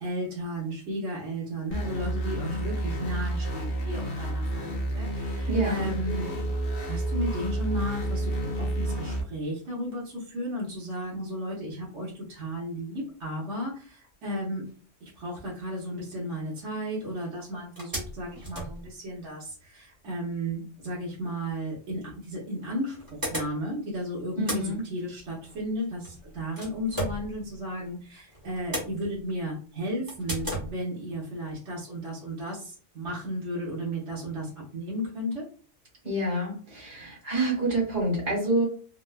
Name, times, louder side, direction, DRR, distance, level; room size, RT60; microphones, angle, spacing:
voice 1, 0.0-6.3 6.9-8.3 8.6-14.7 15.0-35.5, equal, 70° right, -5 dB, 1.3 m, -34 dB
sound 1, 1.7-9.2, right 1 dB, 55° left, 0.8 m, -30 dB
voice 2, 5.5-5.9 24.4-24.8 36.0-38.6, right 1 dB, 85° right, -3 dB, 1.8 m, -27 dB
Telephone, 6.0-9.1 9.5-9.6, equal, 50° right, 1.7 m, -40 dB
sound 2, 17.4-17.5 17.8-19.6 21.6-21.7 22.6-23.9 24.2-28.0 28.3-29.5 30.1-30.7, equal, 20° right, 0.7 m, -36 dB
3.5 x 2.1 x 2.2 m, 0.40 s
omnidirectional pair, 1.3 m